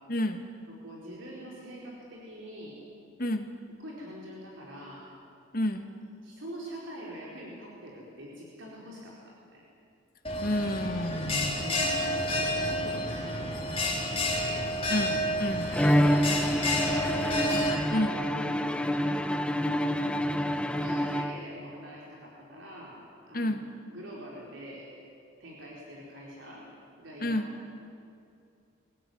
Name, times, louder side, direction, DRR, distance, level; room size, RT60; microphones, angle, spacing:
voice 1, 0.1-0.5 3.2-3.5 5.5-5.9 10.4-11.6 14.9-15.7 17.9-18.2 23.3-23.6 27.2-27.5, left 1 dB, 45° left, 6 dB, 1.7 m, -30 dB
voice 2, 0.7-2.8 3.8-5.1 6.2-9.7 11.1-13.9 14.3-14.7 15.5-17.5 18.6-19.4 20.7-23.0 23.3-23.6 23.9-24.9 25.4-26.7 27.0-27.5, equal, 70° right, -4 dB, 4.4 m, -44 dB
Bell, 10.2-17.7, left 1 dB, 30° left, 3.3 m, -30 dB
Bowed string instrument, 15.7-21.7, equal, 5° left, 0.7 m, -27 dB
23.5 x 17.5 x 9.3 m, 2.5 s
head